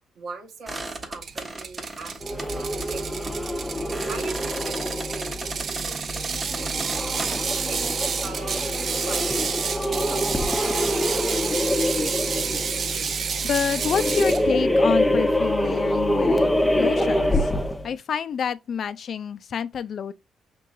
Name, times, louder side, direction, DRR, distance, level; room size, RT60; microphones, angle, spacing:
voice 1, 0.1-3.6 4.1-7.2 7.7-8.6 9.0-9.3 9.9-10.3 10.8-11.3, right 4 dB, 70° right, 1.2 m, -41 dB
sound 1, 0.7-7.4, right 2 dB, 30° right, 1.1 m, -37 dB
Ratchet pawl, 1.2-14.4, right 6 dB, 50° right, 0.5 m, -30 dB
sound 2, 2.2-17.9, left 1 dB, 5° left, 0.7 m, -25 dB
voice 2, 13.4-17.5 17.8-20.1, left 7 dB, 55° left, 0.4 m, -28 dB
5.4 x 3.7 x 2.5 m
cardioid pair, 90°, 0 cm